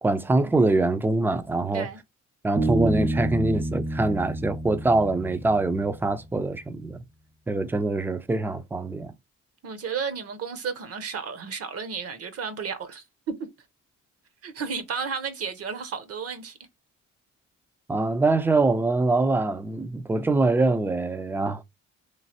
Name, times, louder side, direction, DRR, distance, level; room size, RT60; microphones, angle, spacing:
voice 1, 0.0-1.9 2.4-7.0 7.5-9.1 17.9-21.6, right 2 dB, 5° right, 0.3 m, -24 dB
Bass guitar, 2.6-6.1, right 2 dB, 70° right, 1.2 m, -29 dB
voice 2, 9.6-13.5 14.4-16.6, right 6 dB, 50° right, 0.7 m, -33 dB
3.1 x 2.4 x 2.7 m
cardioid pair, 90°, 30 cm